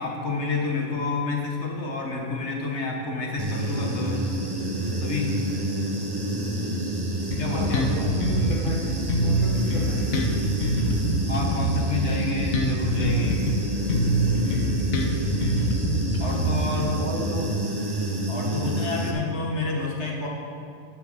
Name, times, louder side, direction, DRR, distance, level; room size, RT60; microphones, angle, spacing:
voice 1, 0.0-4.3 5.0-5.4 7.4-7.9 11.3-13.4 16.2-17.0 18.3-20.3, left 3 dB, 55° left, 0 dB, 1.7 m, -29 dB
Human voice / Buzz, 3.4-19.1, right 1 dB, 20° right, 0.8 m, -28 dB
Bass guitar, 7.3-8.8 9.1-13.6 13.9-16.9, equal, 85° left, 1.5 m, -25 dB
voice 2, 7.5-8.8 9.2-10.2 17.0-17.5, right 1 dB, 40° right, -2 dB, 1.7 m, -34 dB
11.5 x 6.7 x 6.8 m, 2.4 s
omnidirectional pair, 1.4 m